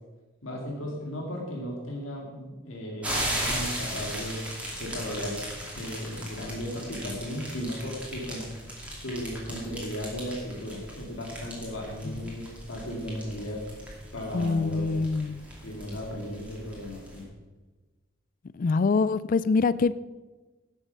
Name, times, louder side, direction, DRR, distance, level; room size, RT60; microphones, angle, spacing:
voice 1, 0.4-4.4 4.8-5.4 5.7-8.5 8.9-13.6 14.1-14.9 15.6-17.3, equal, 75° left, -1 dB, 2.2 m, -36 dB
sound 1, 3.0-17.2, equal, 5° right, 2.6 m, -37 dB
voice 2, 14.3-15.4 18.6-19.9, left 4 dB, 40° left, 18 dB, 0.3 m, -25 dB
11.5 x 7.4 x 5.5 m, 1.2 s
head